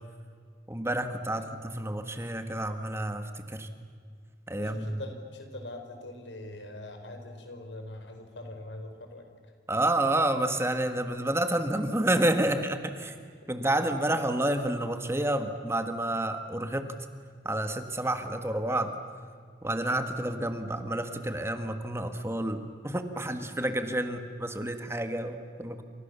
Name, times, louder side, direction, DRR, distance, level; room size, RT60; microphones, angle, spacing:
voice 1, 0.7-3.7 4.5-5.0 9.7-13.1 13.5-16.9 17.4-18.9 19.6-25.8, right 1 dB, 15° right, 8 dB, 1.7 m, -29 dB
voice 2, 4.6-9.5 11.2-11.3 12.5-12.6 13.0-13.1 13.4-13.6 14.0-14.2 24.0-24.2, left 1 dB, 90° left, 5 dB, 5.0 m, -43 dB
28.5 x 27.5 x 7.1 m, 2.1 s
head